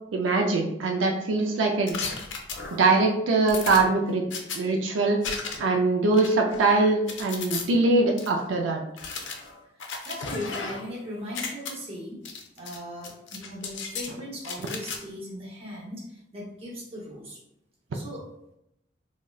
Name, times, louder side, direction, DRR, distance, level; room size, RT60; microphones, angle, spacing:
voice 1, 0.1-1.9 2.7-4.2 4.5-5.2 5.6-8.8, right 3 dB, 80° right, 1 dB, 0.4 m, -22 dB
sound 1, 1.9-3.0 3.5-4.6 5.2-5.8 6.1-7.6 8.2-8.3 9.0-10.9 11.2-11.7 12.2-12.8 13.0-14.1 14.4-15.0, left 5 dB, 75° left, 0.5 m, -35 dB
voice 2, 9.7-12.2 12.6-17.4 17.9-18.2, equal, 30° right, -5 dB, 0.7 m, -38 dB
3.6 x 2.1 x 2.3 m, 0.82 s
head